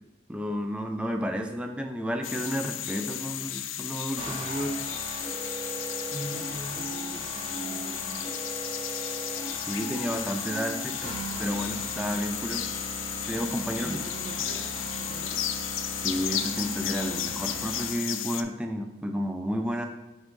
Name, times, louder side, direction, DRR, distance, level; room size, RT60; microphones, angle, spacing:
voice 1, 0.3-4.8 9.7-11.1 11.4-12.7 13.3-14.0 16.0-19.9, equal, 5° right, 4 dB, 0.4 m, -31 dB
sound 1, 2.2-18.4, left 11 dB, 85° left, 0.4 m, -34 dB
sound 2, 4.2-17.9, right 2 dB, 30° right, 1.5 m, -38 dB
voice 2, 6.0-8.2 13.8-14.7 15.0-15.4, equal, 85° right, 0 dB, 1.5 m, -42 dB
6.3 x 3.6 x 5.1 m, 0.98 s
head